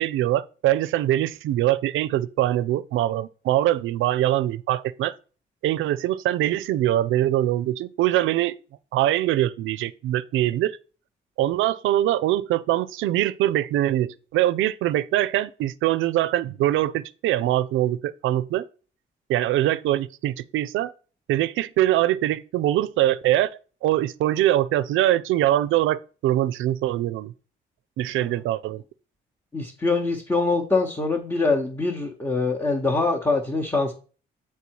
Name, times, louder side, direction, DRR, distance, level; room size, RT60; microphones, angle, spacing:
voice 1, 0.0-5.1 5.6-8.6 8.9-10.8 11.4-18.6 19.3-20.9 21.3-23.5 23.8-27.3 28.0-28.8, right 14 dB, 80° right, 0.4 m, -23 dB
voice 2, 29.5-33.9, left 3 dB, 15° left, 0.9 m, -24 dB
6.9 x 4.5 x 4.6 m
cardioid pair, 90°, 20 cm